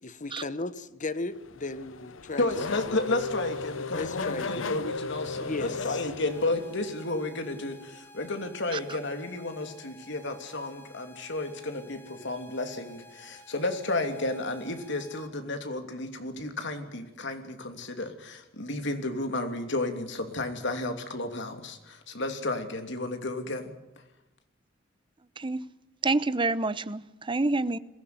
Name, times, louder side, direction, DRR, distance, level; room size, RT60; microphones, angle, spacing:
voice 1, 0.0-2.8 4.0-4.7 5.4-6.0, left 2 dB, 40° left, 1.2 m, -36 dB
Race car auto racing / Accelerating revving vroom, 1.3-6.9, left 4 dB, 85° left, 0.9 m, -36 dB
voice 2, 2.4-23.7, left 2 dB, 65° left, 3.0 m, -32 dB
sound 1, 6.3-15.3, left 1 dB, 10° left, 1.8 m, -53 dB
voice 3, 26.0-27.8, right 3 dB, 25° right, 0.8 m, -28 dB
22.0 x 16.0 x 9.5 m
head